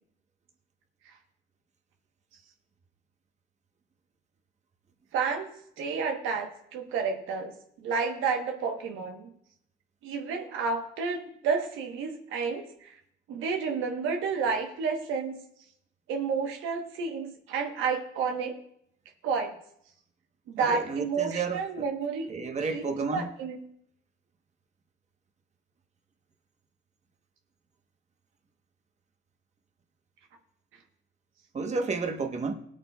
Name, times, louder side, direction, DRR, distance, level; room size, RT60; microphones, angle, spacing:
voice 1, 5.1-5.5 5.8-7.5 7.8-9.3 10.0-12.9 13.3-15.4 16.1-18.5 19.2-19.6 20.5-22.3 22.7-23.6, right 5 dB, 90° right, 3 dB, 1.1 m, -30 dB
voice 2, 20.6-21.6 22.3-23.3 31.5-32.5, right 4 dB, 35° right, 4 dB, 1.1 m, -31 dB
19.0 x 8.5 x 2.3 m, 0.70 s
cardioid pair, 90°, 20 cm